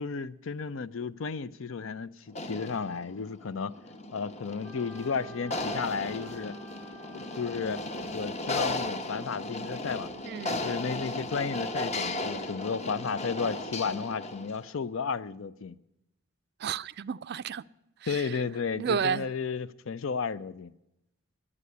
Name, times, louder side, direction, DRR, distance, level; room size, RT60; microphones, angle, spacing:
voice 1, 0.0-3.7 4.1-6.6 7.1-7.8 8.1-10.1 10.5-15.8 18.1-20.7, left 5 dB, 65° left, 0.5 m, -33 dB
sound 1, 2.3-14.6, left 2 dB, 30° left, 0.8 m, -36 dB
Wind instrument woodwind instrument, 4.6-8.6, right 1 dB, 15° left, 1.2 m, -49 dB
voice 2, 10.2-10.6 16.6-17.6 18.0-18.4 18.7-19.3, right 7 dB, 50° right, 0.4 m, -32 dB
11.0 x 9.8 x 9.3 m
head